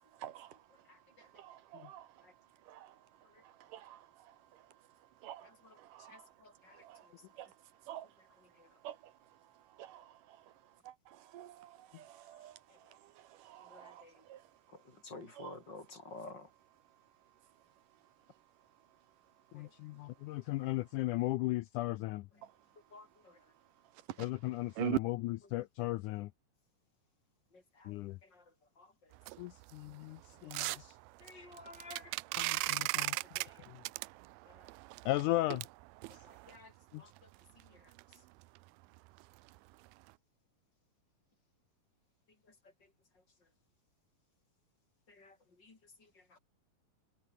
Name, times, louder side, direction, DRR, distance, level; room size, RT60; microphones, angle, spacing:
voice 1, 0.2-0.6 1.3-2.1 2.7-3.0 3.4-4.3 5.2-5.5 5.8-6.3 6.7-7.1 7.4-7.5 7.9-8.1 8.8-9.0 9.8-10.4 10.8-12.6 12.9-14.4 15.4-15.6 24.8-25.0, right 12 dB, 70° right, 2.7 m, -44 dB
voice 2, 0.9-1.3 2.2-2.3 3.3-3.4 5.4-5.8 6.1-7.1 8.6-8.7 12.7-12.8 13.7-14.2 14.7-16.5 19.5-19.7 22.9-23.4 27.5-28.4 28.8-29.1 30.4-30.9 31.2-32.1 32.8-32.9 33.4-33.6 34.5-34.7 36.2-37.3 37.5-37.9 45.1-46.4, left 3 dB, 30° left, 4.3 m, -54 dB
voice 3, 19.5-22.3 24.2-26.3 27.8-28.2 29.4-30.7 31.3-31.4 32.3-33.2 33.7-33.8 35.0-35.6 36.9-37.0, left 17 dB, 80° left, 1.8 m, -36 dB
sound 1, 29.1-36.6 37.2-37.3 37.6-37.7 38.0-38.1 38.4-38.6 39.0-39.2 39.5-39.6 40.1-40.2, right 23 dB, 90° right, 2.4 m, -39 dB
omnidirectional pair, 4.1 m